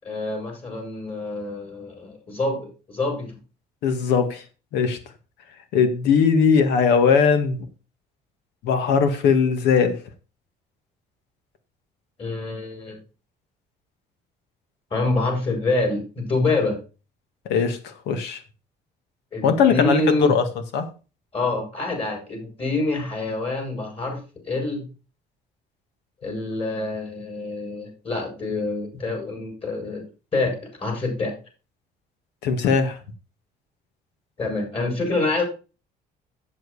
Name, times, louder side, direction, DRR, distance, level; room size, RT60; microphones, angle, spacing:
voice 1, 0.0-3.4 12.2-13.0 14.9-16.8 19.3-20.3 21.3-24.2 24.5-24.9 26.2-30.0 30.3-31.3 34.4-35.4, left 2 dB, 35° left, 2 dB, 5.3 m, -26 dB
voice 2, 3.8-4.4 4.7-5.0 5.7-7.7 8.6-10.0 17.5-18.4 19.4-20.0 20.3-20.4 20.7-20.9 32.4-33.0, left 6 dB, 85° left, 8 dB, 1.9 m, -19 dB
7.8 x 7.7 x 4.8 m, 0.33 s
cardioid pair, 110°, 17 cm